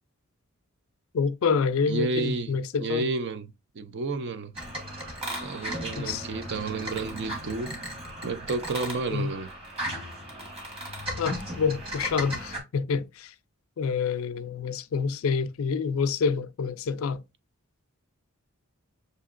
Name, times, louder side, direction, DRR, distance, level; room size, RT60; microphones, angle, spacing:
voice 1, 1.1-3.1 6.0-6.3 9.1-9.3 11.2-13.3 13.8-17.2, left 5 dB, 65° left, 0.4 m, -27 dB
voice 2, 1.9-4.5 5.4-7.8 8.2-9.5, right 3 dB, 55° right, 0.5 m, -31 dB
sound 1, 4.5-12.6, equal, 25° right, 1.4 m, -36 dB
6.2 x 2.8 x 2.4 m
head